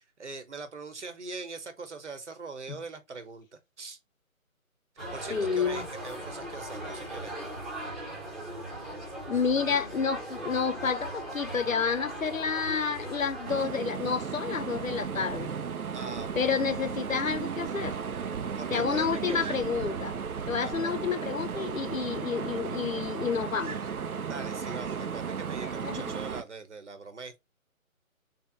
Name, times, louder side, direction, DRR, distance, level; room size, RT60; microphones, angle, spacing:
voice 1, 0.0-4.0 5.1-7.4 15.9-16.5 18.5-19.5 20.6-20.9 24.3-27.4, right 4 dB, 55° right, 1.0 m, -42 dB
sound 1, 5.0-13.6, right 1 dB, 5° right, 1.0 m, -39 dB
voice 2, 5.3-5.9 9.3-15.5 16.4-18.0 18.7-20.2 20.5-23.8 25.8-26.2, left 6 dB, 70° left, 0.6 m, -30 dB
sound 2, 13.5-26.4, right 6 dB, 85° right, 0.6 m, -35 dB
3.4 x 2.9 x 3.5 m
figure-of-eight pair, 150°, 42 cm